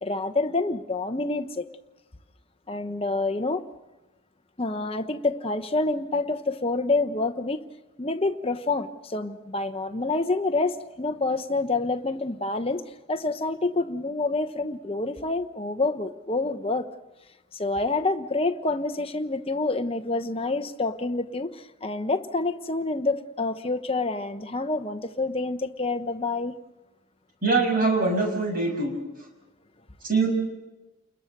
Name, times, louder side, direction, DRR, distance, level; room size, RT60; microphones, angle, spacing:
voice 1, 0.0-1.7 2.7-3.6 4.6-7.6 8.0-12.8 13.1-16.8 17.5-26.5, left 3 dB, 25° left, 1.0 m, -27 dB
voice 2, 27.4-28.9 30.0-30.3, right 3 dB, 45° right, 6.4 m, -23 dB
30.0 x 21.5 x 6.7 m
head